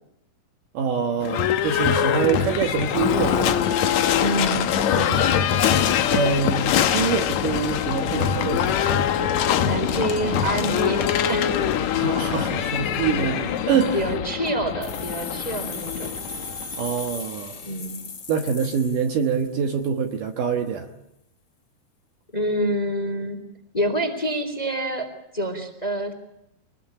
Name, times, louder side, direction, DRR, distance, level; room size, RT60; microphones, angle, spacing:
voice 1, 0.7-3.7 6.1-9.0 12.0-13.4 13.7-14.1 16.8-17.6 18.3-20.9, right 6 dB, 65° right, 4 dB, 2.6 m, -25 dB
Livestock farm animals working animals / Bell, 1.2-17.1, left 9 dB, 70° left, 1.8 m, -23 dB
voice 2, 4.2-5.2 9.6-11.5 11.8-11.9 12.2-12.6 13.2-13.6 13.9-16.1 17.6-18.0 22.3-23.4 23.7-25.1 25.3-26.1, right 1 dB, 10° left, 5 dB, 2.6 m, -27 dB
sound 1, 14.8-19.6, left 3 dB, 40° left, 1.9 m, -37 dB
24.5 x 20.5 x 8.7 m, 0.82 s
omnidirectional pair, 4.6 m